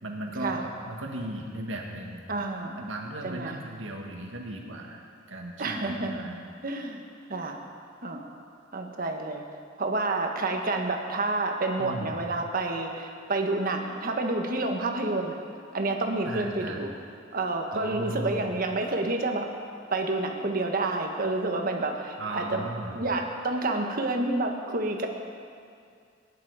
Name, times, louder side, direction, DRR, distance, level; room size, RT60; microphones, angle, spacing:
voice 1, 0.0-2.2 2.8-6.4 11.8-12.2 16.3-16.8 17.7-18.4 22.2-23.0, right 1 dB, 80° right, 1 dB, 1.9 m, -36 dB
voice 2, 2.3-2.8 3.2-3.5 5.6-6.2 6.6-7.0 7.3-7.6 8.0-8.3 8.7-9.4 9.8-15.4 15.7-16.9 17.3-19.5 19.9-25.1, right 2 dB, 45° right, 3 dB, 1.4 m, -29 dB
18.0 x 10.5 x 5.0 m, 2.3 s
head